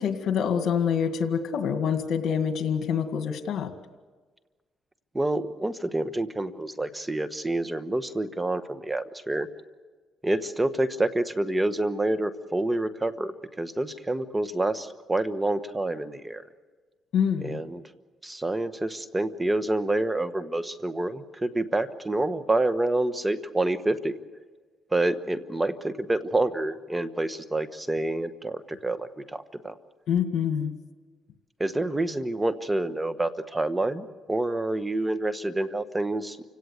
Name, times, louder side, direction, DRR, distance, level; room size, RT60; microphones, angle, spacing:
voice 1, 0.0-3.7 17.1-17.6 30.1-30.7, left 7 dB, 70° left, 8 dB, 2.0 m, -26 dB
voice 2, 5.1-9.5 10.2-16.4 17.4-17.8 18.2-24.2 24.9-29.7 31.6-36.4, right 2 dB, 15° right, 11 dB, 1.2 m, -28 dB
29.5 x 17.5 x 8.1 m, 1.4 s
cardioid pair, 90°, 0 cm